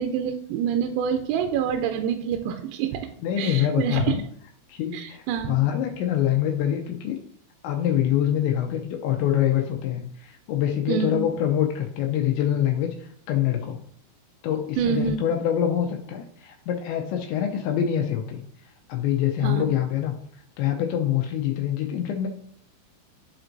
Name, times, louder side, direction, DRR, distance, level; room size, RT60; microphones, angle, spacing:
voice 1, 0.0-3.1 3.4-4.1 4.9-5.5 10.9-11.3 14.8-15.2 19.4-19.6, right 8 dB, 90° right, 5 dB, 3.2 m, -26 dB
voice 2, 3.2-4.2 4.7-7.2 7.6-13.8 14.4-18.4 18.9-20.1 20.6-22.3, left 10 dB, 85° left, 4 dB, 2.6 m, -25 dB
11.0 x 4.4 x 2.6 m, 0.62 s
omnidirectional pair, 5.8 m